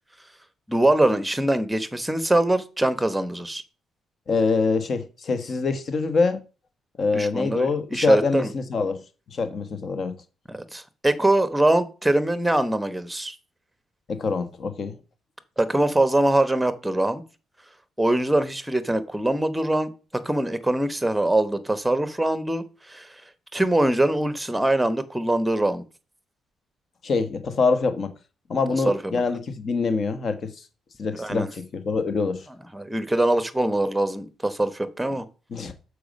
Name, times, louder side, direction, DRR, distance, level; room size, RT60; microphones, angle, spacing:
voice 1, 0.7-3.6 7.1-8.5 10.5-13.3 15.6-17.2 18.0-23.1 23.5-25.8 28.8-29.0 31.2-31.5 32.7-35.2, right 1 dB, 5° right, 1.0 m, -23 dB
voice 2, 4.3-6.4 7.0-9.0 9.3-10.1 14.1-15.0 27.0-28.1 28.5-30.5 31.0-32.4 35.5-35.7, left 4 dB, 50° left, 1.2 m, -25 dB
6.9 x 4.8 x 5.2 m
cardioid pair, 90°, 0 cm